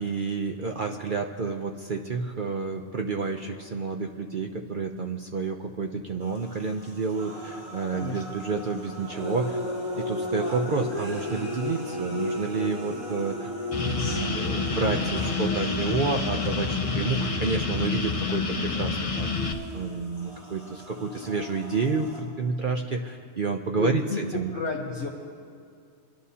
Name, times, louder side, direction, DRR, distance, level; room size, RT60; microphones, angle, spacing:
voice 1, 0.0-9.6 10.0-24.5, right 4 dB, 55° right, 3 dB, 0.6 m, -30 dB
sound 1, 6.2-22.2, left 1 dB, 25° right, 2.5 m, -36 dB
voice 2, 7.9-8.2 23.7-24.2 24.5-25.1, left 3 dB, 55° left, -2 dB, 1.3 m, -31 dB
sound 2, 13.7-19.5, left 4 dB, 30° left, 0.7 m, -28 dB
26.5 x 11.5 x 2.8 m, 2.2 s
omnidirectional pair, 1.5 m